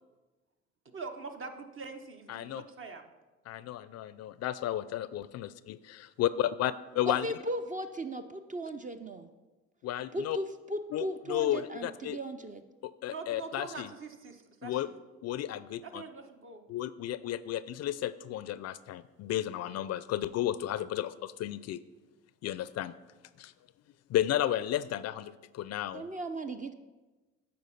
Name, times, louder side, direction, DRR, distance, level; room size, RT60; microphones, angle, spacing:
voice 1, 0.9-3.1 13.1-15.0 15.8-16.6, right 4 dB, 40° right, 6 dB, 1.0 m, -44 dB
voice 2, 2.3-2.6 3.5-7.3 9.8-10.4 10.9-12.2 12.8-13.9 14.6-14.9 15.2-16.0 16.7-21.8 22.4-22.9 23.4-23.5 24.1-26.0, left 12 dB, 55° left, 16 dB, 0.4 m, -33 dB
voice 3, 7.1-9.3 10.1-12.6 25.9-26.7, right 1 dB, 25° right, 8 dB, 0.5 m, -37 dB
8.4 x 4.4 x 5.6 m, 1.2 s
supercardioid pair, 60°, 31 cm